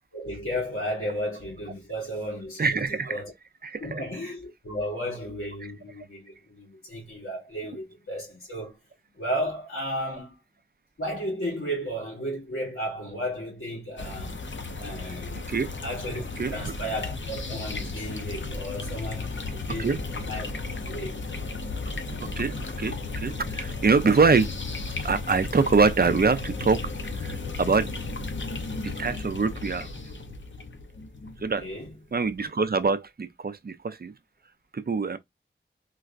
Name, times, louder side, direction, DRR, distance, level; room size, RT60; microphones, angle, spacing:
voice 1, 0.1-3.3 3.8-8.8 9.1-10.4 11.0-14.4 14.8-15.4 15.8-16.2 16.5-20.5 20.8-21.2 31.6-31.9, equal, 85° left, 2.4 m, -34 dB
voice 2, 2.6-3.2 3.6-4.0 15.5-15.7 16.4-16.7 19.8-20.0 22.2-24.5 25.0-26.8 27.1-27.9 28.8-29.9 31.4-31.7 32.1-34.1 34.7-35.2, right 4 dB, 50° right, 0.5 m, -24 dB
sound 1, 14.0-32.1, left 3 dB, 65° left, 0.6 m, -34 dB
3.9 x 2.2 x 2.4 m
wide cardioid pair, 40°, 21 cm